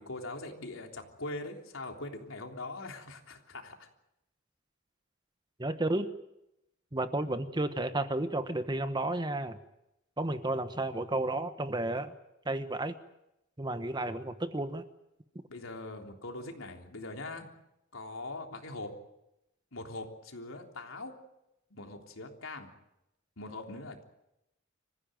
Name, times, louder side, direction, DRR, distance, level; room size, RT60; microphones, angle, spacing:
voice 1, 0.0-3.9 15.5-17.5 17.9-18.9 19.7-21.1 21.7-22.7 23.4-24.0, left 2 dB, 85° left, 3 dB, 3.5 m, -42 dB
voice 2, 5.6-6.1 6.9-9.6 10.2-12.1 12.4-12.9 13.6-14.8, right 2 dB, 20° right, 10 dB, 1.1 m, -32 dB
25.5 x 15.5 x 9.2 m, 0.87 s
head